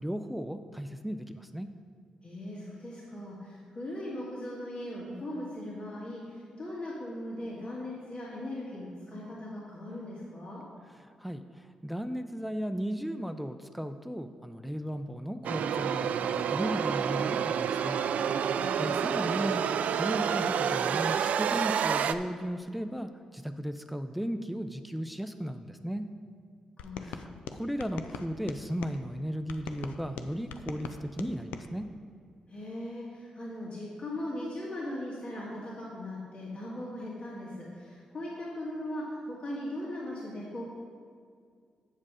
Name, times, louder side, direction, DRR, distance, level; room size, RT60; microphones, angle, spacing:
voice 1, 0.0-1.7 11.0-18.5 18.8-26.0 27.0-31.8, equal, ahead, 8 dB, 0.6 m, -36 dB
voice 2, 2.2-10.6 18.5-18.9 26.8-27.1 32.5-40.7, left 1 dB, 50° left, -7 dB, 2.2 m, -39 dB
sound 1, 15.4-22.1, right 8 dB, 70° right, 0.3 m, -29 dB
sound 2, 26.8-29.0 29.5-31.7, left 6 dB, 85° left, 0.4 m, -42 dB
7.5 x 7.4 x 4.9 m, 2.1 s
supercardioid pair, 45°, 3 cm